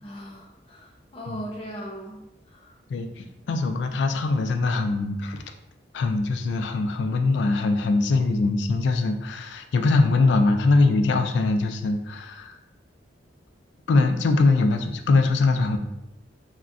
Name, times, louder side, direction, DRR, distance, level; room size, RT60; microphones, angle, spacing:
voice 1, 0.0-2.8, equal, 30° left, -3 dB, 0.6 m, -39 dB
voice 2, 2.9-5.4 5.9-12.6 13.9-15.8, left 3 dB, 70° left, 6 dB, 0.3 m, -22 dB
3.5 x 2.1 x 2.5 m, 0.88 s
head